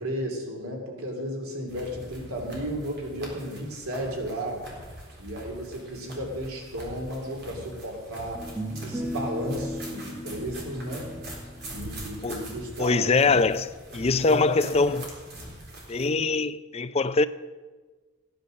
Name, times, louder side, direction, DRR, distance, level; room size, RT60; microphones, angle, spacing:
voice 1, 0.0-4.6 5.2-8.4 8.8-11.1 11.7-13.4 14.2-14.8, equal, 85° right, 2.8 m, -34 dB
sound 1, 1.7-16.1, right 1 dB, 50° right, 3.8 m, -43 dB
sound 2, 7.3-7.4 8.3-13.6, equal, 5° right, 1.1 m, -38 dB
voice 2, 12.8-15.1 15.9-17.3, left 3 dB, 30° left, 0.4 m, -23 dB
15.0 x 10.5 x 6.5 m
head